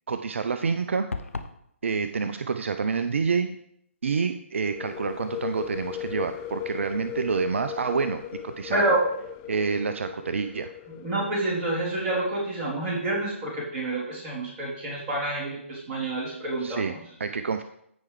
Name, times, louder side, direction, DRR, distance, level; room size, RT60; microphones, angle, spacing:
voice 1, 0.1-1.1 1.8-3.6 4.0-8.9 9.5-10.7 16.6-17.6, right 5 dB, 65° right, 9 dB, 0.5 m, -28 dB
sound 1, 1.1-1.6, left 3 dB, 85° left, 0.7 m, -33 dB
sound 2, 4.6-12.2, left 12 dB, 20° left, 0.4 m, -38 dB
voice 2, 8.7-9.0 10.9-17.0, right 2 dB, 25° right, -5 dB, 3.3 m, -28 dB
14.5 x 4.9 x 3.3 m, 0.73 s
figure-of-eight pair, 140°, 7 cm